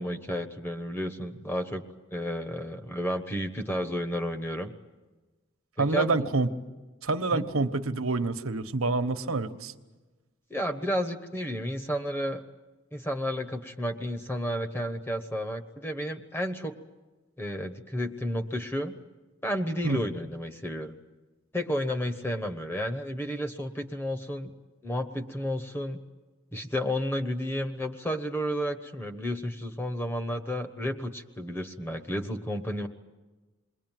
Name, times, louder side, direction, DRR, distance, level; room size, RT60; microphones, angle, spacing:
voice 1, 0.0-1.8 2.1-4.7 5.8-6.3 7.3-7.4 10.5-12.4 12.9-16.7 17.4-18.9 19.4-20.9 21.5-24.5 24.8-26.0 26.5-32.9, equal, 10° left, 7 dB, 1.2 m, -32 dB
voice 2, 5.8-6.5 7.0-9.7 19.8-20.0, right 3 dB, 85° right, 9 dB, 1.2 m, -27 dB
28.0 x 21.5 x 9.2 m, 1.2 s
head